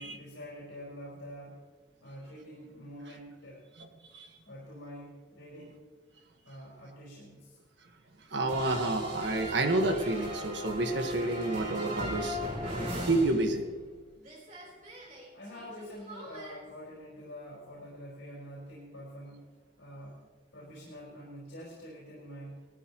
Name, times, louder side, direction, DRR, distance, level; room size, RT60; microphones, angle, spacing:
voice 1, 0.0-1.6 2.0-3.6 4.4-5.8 6.4-7.6 15.3-19.5 19.8-20.2 20.5-22.7, equal, 75° left, -6 dB, 4.8 m, -46 dB
voice 2, 8.3-13.7, right 2 dB, 65° right, 4 dB, 1.7 m, -30 dB
sound 1, 8.5-13.9 14.2-16.5, equal, 40° right, 4.2 m, -38 dB
19.0 x 14.0 x 3.1 m, 1.4 s
head